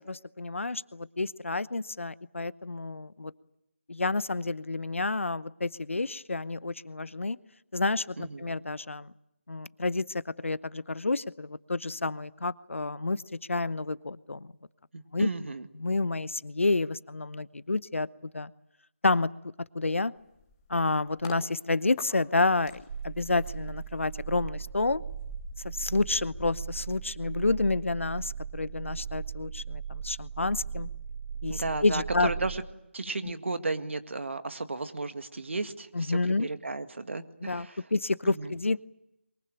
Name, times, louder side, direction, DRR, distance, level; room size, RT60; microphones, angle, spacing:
voice 1, 0.0-3.3 3.9-7.4 7.7-9.1 9.5-13.2 13.5-14.5 15.1-15.3 15.8-18.1 18.3-18.5 19.0-19.3 19.7-20.1 20.7-25.0 25.6-30.9 31.4-32.3 33.2-33.3 35.9-36.5 37.4-38.8, left 3 dB, 80° left, 18 dB, 0.9 m, -29 dB
voice 2, 14.9-15.7 31.5-32.6 32.9-37.8 38.3-38.5, right 3 dB, 70° right, 9 dB, 1.9 m, -34 dB
sound 1, 20.2-21.4 22.0-27.5 27.9-28.1, left 6 dB, 20° left, 1.7 m, -49 dB
sound 2, 22.9-32.6, right 7 dB, 30° right, 1.5 m, -38 dB
23.0 x 23.0 x 9.0 m, 0.85 s
figure-of-eight pair, 160°, 7 cm